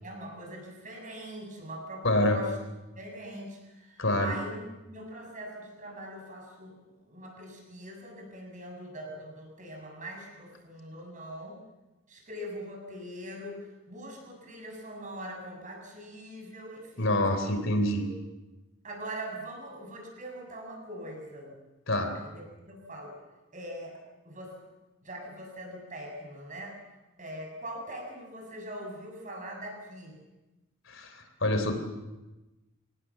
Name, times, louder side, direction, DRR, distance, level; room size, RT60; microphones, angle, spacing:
voice 1, 0.0-2.6 3.0-4.6 4.9-11.6 12.1-17.6 17.9-18.1 18.8-21.6 22.1-23.2 23.5-24.6 25.0-26.8 27.2-30.2, equal, 40° right, 2 dB, 7.1 m, -42 dB
voice 2, 2.0-2.4 4.0-4.3 17.0-18.0 21.9-22.1 30.9-31.7, left 1 dB, 60° left, 7 dB, 3.4 m, -26 dB
25.0 x 18.5 x 7.5 m, 1.1 s
head